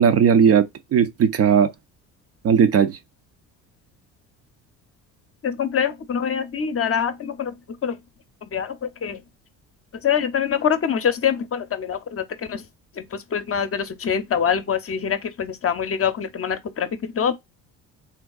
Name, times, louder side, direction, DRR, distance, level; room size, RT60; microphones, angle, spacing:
voice 1, 0.0-1.7 2.4-3.0, right 7 dB, 35° right, 0.4 m, -17 dB
voice 2, 5.4-7.5 7.8-8.0 8.5-9.2 10.0-12.6 13.0-17.4, left 7 dB, 35° left, 0.7 m, -24 dB
3.4 x 2.3 x 2.3 m
hypercardioid pair, 65°, 42 cm